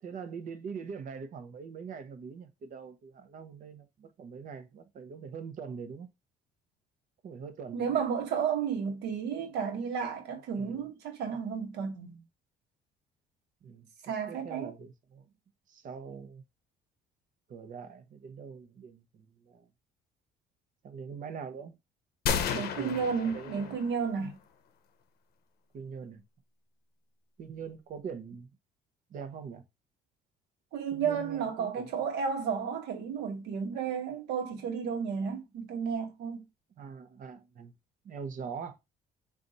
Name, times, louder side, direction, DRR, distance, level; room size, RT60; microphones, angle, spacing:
voice 1, 0.0-6.1 7.2-8.0 10.5-10.9 13.6-13.9 14.3-15.3 15.7-16.4 17.5-19.7 20.8-21.8 22.3-23.7 25.7-26.2 27.4-28.5 29.1-29.6 30.9-31.9 36.8-37.7 38.0-38.8, right 6 dB, 50° right, 0.8 m, -43 dB
voice 2, 7.7-12.2 14.1-14.7 22.5-24.4 30.7-36.4, right 6 dB, 80° right, 1.1 m, -32 dB
sound 1, 22.3-24.1, left 7 dB, 65° left, 0.6 m, -33 dB
3.9 x 2.5 x 3.9 m
cardioid pair, 110°, 17 cm